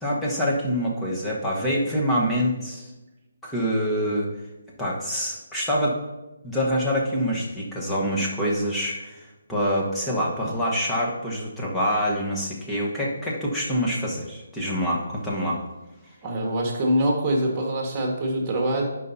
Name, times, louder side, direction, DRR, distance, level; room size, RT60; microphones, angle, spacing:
voice 1, 0.0-2.9 3.4-4.3 4.8-6.0 6.4-15.6, equal, 5° left, -5 dB, 1.2 m, -26 dB
voice 2, 16.2-18.8, right 1 dB, 25° right, 0 dB, 1.7 m, -24 dB
10.5 x 5.4 x 2.8 m, 1.1 s
figure-of-eight pair, 150°, 0 cm